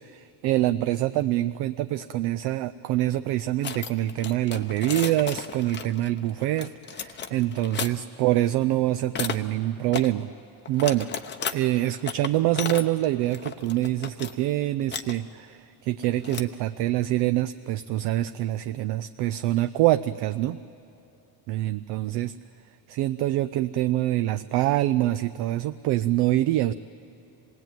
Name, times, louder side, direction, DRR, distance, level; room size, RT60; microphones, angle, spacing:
voice 1, 0.1-10.3 10.7-11.1 11.5-20.6 21.5-22.3 22.9-26.7, right 15 dB, 55° right, 11 dB, 0.6 m, -25 dB
sound 1, 3.6-7.9 9.1-9.4 9.9-10.1 10.7-11.5 12.1-14.3 14.6-15.1 16.0-16.7, left 7 dB, 20° left, 0.7 m, -34 dB
26.5 x 19.0 x 9.1 m, 2.7 s
cardioid pair, 150°, 49 cm